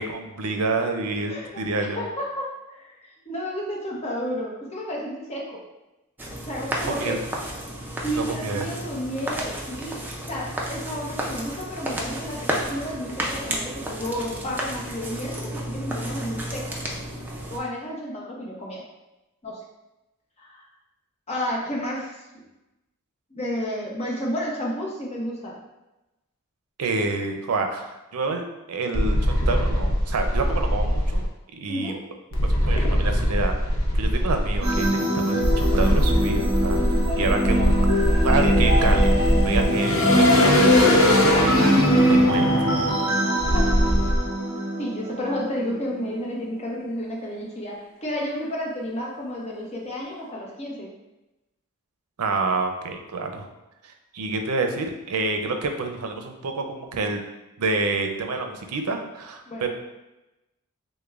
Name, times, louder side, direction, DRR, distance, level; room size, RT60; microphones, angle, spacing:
voice 1, 0.0-2.0 6.8-7.2 8.1-8.7 26.8-31.3 31.6-31.9 32.4-33.6 33.9-36.8 37.2-37.7 38.0-39.1 39.4-42.5 52.2-53.4 54.1-57.2 57.6-59.7, right 3 dB, 80° right, 4 dB, 0.5 m, -28 dB
voice 2, 1.3-1.6 1.9-5.6 6.4-7.2 8.0-16.7 17.5-18.8 19.4-19.6 20.4-20.6 21.3-22.4 23.3-25.6 31.7-32.0 39.9-40.2 43.5-43.7 44.8-50.9 59.5-59.7, equal, 30° left, -3 dB, 0.8 m, -31 dB
sound 1, 6.2-17.6, right 1 dB, 10° right, 0.4 m, -32 dB
sound 2, 28.9-31.2 32.3-34.9 35.4-44.2, equal, 70° left, 0.7 m, -21 dB
sound 3, 34.6-46.2, equal, 45° right, 1.2 m, -25 dB
6.3 x 2.1 x 2.4 m, 0.98 s
head